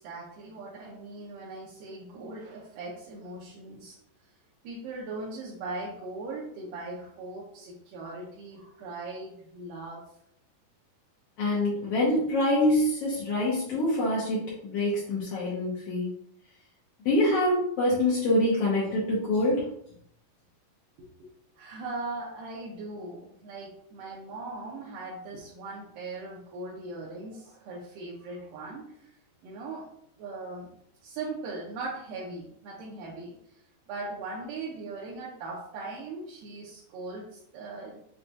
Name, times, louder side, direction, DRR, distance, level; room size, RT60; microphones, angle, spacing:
voice 1, 0.0-4.0 4.6-10.1 21.0-21.3 21.6-29.1 29.4-29.9 30.2-30.7 31.0-33.4 33.9-38.0, right 3 dB, 80° right, -5 dB, 2.3 m, -39 dB
voice 2, 11.4-16.1 17.0-19.7, left 1 dB, 80° left, -7 dB, 1.3 m, -25 dB
6.3 x 2.3 x 2.6 m, 0.71 s
omnidirectional pair, 4.1 m